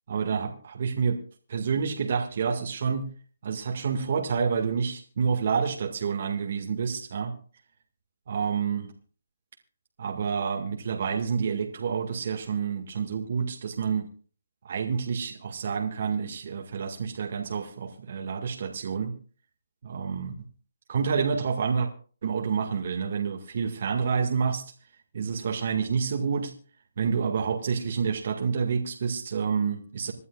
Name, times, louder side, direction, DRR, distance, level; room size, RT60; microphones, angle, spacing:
voice 1, 0.1-1.2 1.5-3.1 3.4-7.3 8.3-8.9 10.0-14.1 14.6-19.1 19.8-20.3 20.9-21.9 22.2-24.6 25.1-26.5 27.0-30.1, right 6 dB, 55° right, 3 dB, 2.0 m, -28 dB
26.5 x 11.0 x 2.5 m, 0.41 s
hypercardioid pair, 155°, 0 cm